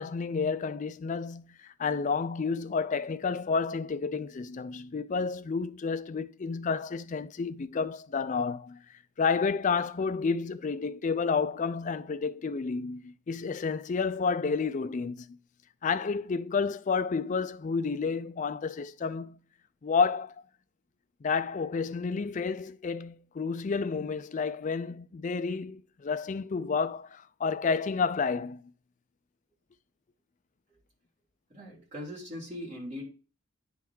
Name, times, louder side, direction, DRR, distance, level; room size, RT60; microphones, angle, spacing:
voice 1, 0.0-8.8 9.2-15.4 15.8-19.4 19.8-20.3 21.2-28.6, left 5 dB, 40° left, 0.4 m, -30 dB
voice 2, 31.5-33.1, left 1 dB, 35° right, 3.3 m, -40 dB
9.7 x 3.6 x 4.5 m
head